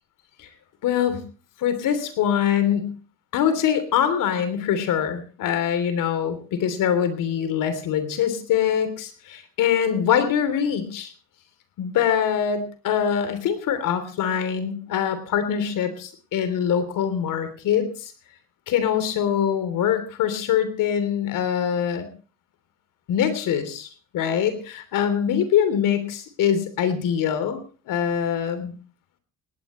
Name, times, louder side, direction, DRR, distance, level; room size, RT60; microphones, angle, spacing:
voice 1, 0.8-1.2 1.6-2.9 3.3-11.1 11.8-18.1 18.7-22.1 23.1-23.9 24.1-27.6 27.9-28.7, left 8 dB, 75° left, 11 dB, 3.3 m, -23 dB
18.5 x 18.5 x 3.2 m, 0.38 s
cardioid pair, 110°, 32 cm